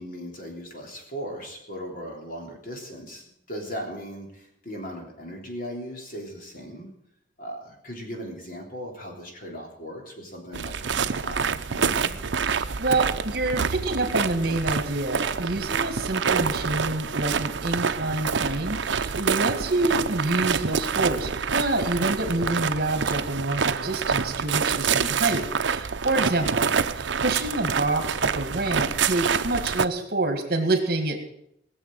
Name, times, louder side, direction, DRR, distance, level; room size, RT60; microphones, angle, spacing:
voice 1, 0.0-6.9 7.4-12.1 26.4-26.7, equal, 50° left, 1 dB, 3.4 m, -38 dB
sound 1, 10.5-29.9, right 6 dB, 75° right, 0.6 m, -27 dB
voice 2, 12.5-26.7 27.0-31.2, right 2 dB, 55° right, 6 dB, 2.1 m, -27 dB
18.5 x 7.1 x 7.6 m, 0.74 s
head